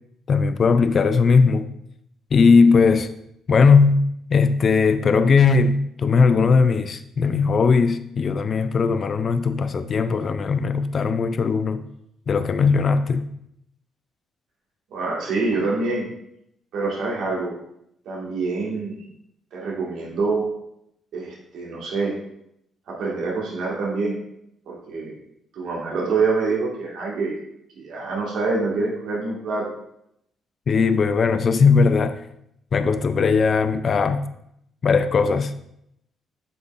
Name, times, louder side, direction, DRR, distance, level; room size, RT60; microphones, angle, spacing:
voice 1, 0.3-1.7 2.3-3.1 3.5-11.8 12.3-13.2 30.7-32.2 32.7-34.2 34.8-35.5, left 5 dB, 45° left, 0.4 m, -18 dB
voice 2, 14.9-16.1 16.7-17.5 18.0-19.0 19.5-20.4 21.1-22.1 22.9-24.2 24.7-25.1 25.5-27.3 27.7-29.7, right 3 dB, 80° right, 1.8 m, -26 dB
8.0 x 5.5 x 2.5 m
cardioid pair, 90°, 0 cm